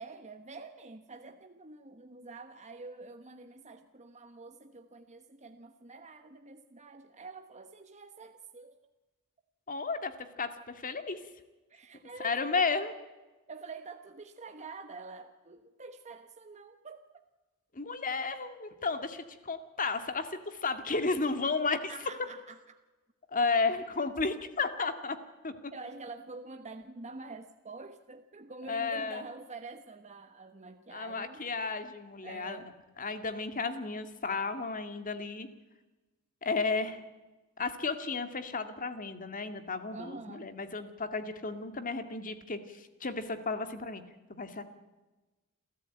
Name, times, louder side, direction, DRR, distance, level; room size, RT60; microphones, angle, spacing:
voice 1, 0.0-8.8 11.7-12.8 13.5-17.2 21.9-22.8 25.7-31.4 32.2-32.7 39.9-40.5, right 3 dB, 30° right, 7 dB, 1.1 m, -47 dB
voice 2, 9.7-10.5 10.8-11.2 12.2-12.9 17.7-21.9 23.3-25.2 25.4-25.5 28.7-29.2 30.9-32.7 33.0-35.5 36.4-37.0 37.6-44.0 44.3-44.6, left 4 dB, 40° left, 9 dB, 2.0 m, -33 dB
29.0 x 13.5 x 8.9 m, 1.2 s
head